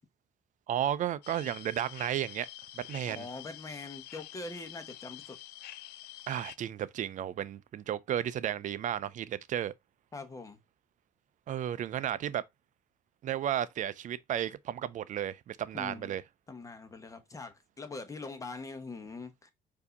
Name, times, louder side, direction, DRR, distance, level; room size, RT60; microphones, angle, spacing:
voice 1, 0.7-2.5 2.7-3.3 6.3-9.7 11.5-12.4 13.2-16.2, right 10 dB, 50° right, 0.5 m, -33 dB
sound 1, 1.2-6.6, left 15 dB, 75° left, 0.4 m, -48 dB
voice 2, 3.1-5.4 10.1-10.6 15.7-16.2 16.5-19.5, left 3 dB, 20° left, 1.0 m, -43 dB
4.7 x 2.8 x 3.9 m
cardioid pair, 110°, 17 cm